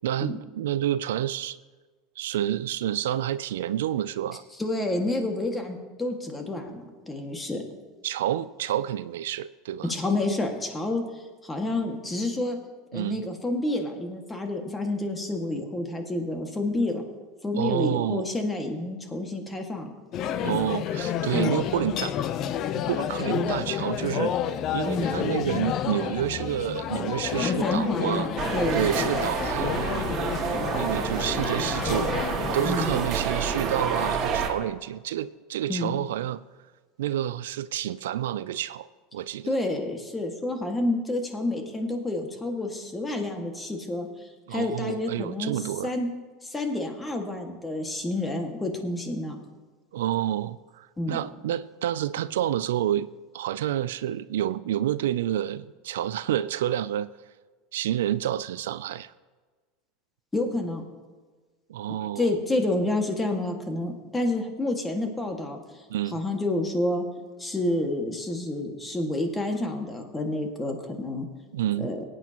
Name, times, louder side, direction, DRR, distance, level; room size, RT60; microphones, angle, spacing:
voice 1, 0.0-1.6 2.2-4.4 8.0-9.9 12.9-13.2 17.6-18.3 20.4-22.2 22.7-24.4 24.7-28.3 28.7-32.2 32.5-36.4 37.0-38.9 39.1-39.5 44.5-45.9 49.9-57.1 57.7-59.1 61.7-62.3 65.9-66.2 71.5-71.9, right 11 dB, 85° right, 16 dB, 0.3 m, -29 dB
voice 2, 4.6-7.6 9.8-12.6 12.9-17.0 17.4-19.9 21.3-21.6 23.3-23.5 24.8-25.1 27.4-28.8 32.6-32.9 35.7-36.0 39.5-44.1 44.5-46.1 46.4-49.4 51.0-51.3 60.3-60.8 62.2-65.6 66.1-67.0 67.4-71.3 71.8-72.0, left 2 dB, 15° left, 3 dB, 1.9 m, -29 dB
sound 1, 20.1-33.1, left 10 dB, 50° left, 0.6 m, -30 dB
sound 2, 28.4-34.5, right 6 dB, 45° right, 2.0 m, -28 dB
18.5 x 9.2 x 3.0 m, 1.4 s
supercardioid pair, 105°, 0 cm